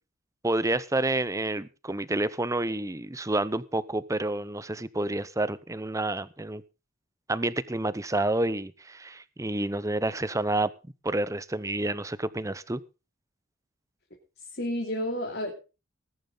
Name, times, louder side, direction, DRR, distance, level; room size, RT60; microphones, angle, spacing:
voice 1, 0.4-6.6 7.3-10.7 11.0-12.8, right 2 dB, 15° right, 16 dB, 0.7 m, -29 dB
voice 2, 14.4-15.5, left 1 dB, 50° left, 1 dB, 3.0 m, -31 dB
20.0 x 10.5 x 4.0 m, 0.32 s
head